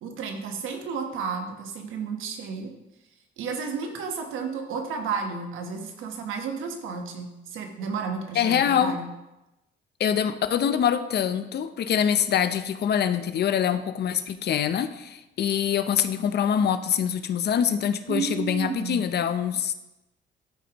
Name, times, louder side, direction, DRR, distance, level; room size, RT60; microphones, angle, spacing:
voice 1, 0.0-2.7 3.4-9.1 18.1-19.0, right 5 dB, 90° right, 4 dB, 1.2 m, -32 dB
voice 2, 8.4-9.0 10.0-19.7, left 8 dB, 55° left, 11 dB, 0.6 m, -24 dB
12.5 x 5.0 x 3.0 m, 0.96 s
cardioid pair, 90°, 20 cm